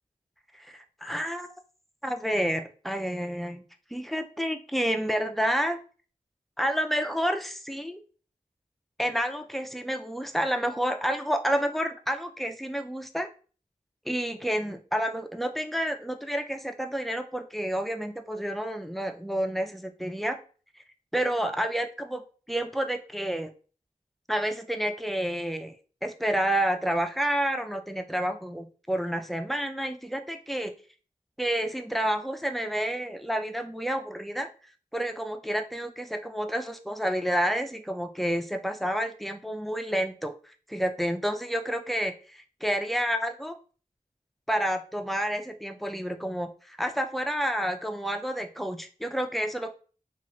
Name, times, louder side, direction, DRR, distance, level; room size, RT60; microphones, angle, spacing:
voice 1, 0.5-1.5 2.0-3.6 3.9-5.8 6.6-8.0 9.0-13.3 14.1-20.4 21.1-22.2 22.5-23.5 24.3-25.8 26.0-30.7 31.4-34.5 34.9-43.6 44.5-49.7, equal, ahead, 6 dB, 0.4 m, -29 dB
3.0 x 2.4 x 2.6 m, 0.38 s
wide cardioid pair, 45°, 16 cm